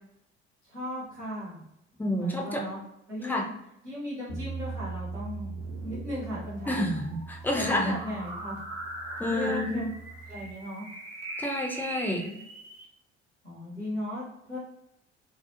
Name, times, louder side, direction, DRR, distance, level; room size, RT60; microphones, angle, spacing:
voice 1, 0.6-1.6 2.2-2.8 3.1-3.5 3.8-5.6 5.8-6.9 7.5-8.6 9.3-9.9 10.3-10.9 13.4-14.6, equal, 85° right, -7 dB, 0.9 m, -36 dB
voice 2, 2.0-2.7 3.2-3.5 6.7-7.9 9.2-9.9 11.4-12.3, left 1 dB, 5° left, 0 dB, 0.4 m, -29 dB
Bass guitar, 4.3-10.5, right 4 dB, 80° left, 0.6 m, -41 dB
sound 1, 5.4-12.8, right 1 dB, 60° right, 0.8 m, -40 dB
2.4 x 2.0 x 2.7 m, 0.84 s
figure-of-eight pair, 55°, 34 cm